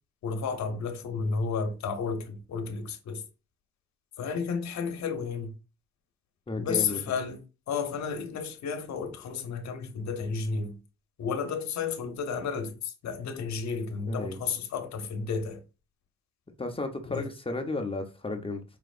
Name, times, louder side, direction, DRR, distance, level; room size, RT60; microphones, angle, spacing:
voice 1, 0.2-3.2 4.2-5.5 6.6-10.8 11.2-15.6 17.1-17.3, left 5 dB, 65° left, 0.9 m, -32 dB
voice 2, 6.5-7.0 14.1-14.4 16.6-18.6, left 2 dB, 20° left, 0.9 m, -33 dB
5.0 x 3.1 x 2.5 m
cardioid pair, 90°, 30 cm